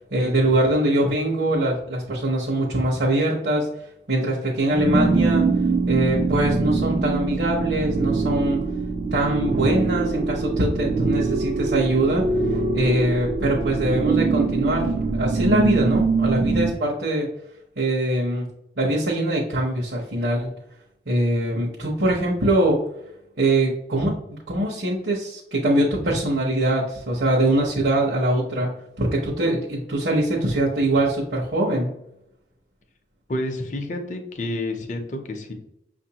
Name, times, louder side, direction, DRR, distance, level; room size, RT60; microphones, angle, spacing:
voice 1, 0.0-3.7 4.1-5.5 5.9-8.6 9.1-17.3 17.8-18.5 18.8-20.5 21.1-22.8 23.4-31.9, right 1 dB, 70° right, -4 dB, 0.9 m, -23 dB
sound 1, 4.7-16.7, right 4 dB, 40° right, 0.3 m, -23 dB
voice 2, 33.3-35.5, left 1 dB, 40° left, 4 dB, 0.6 m, -29 dB
6.0 x 2.6 x 2.9 m, 0.82 s
head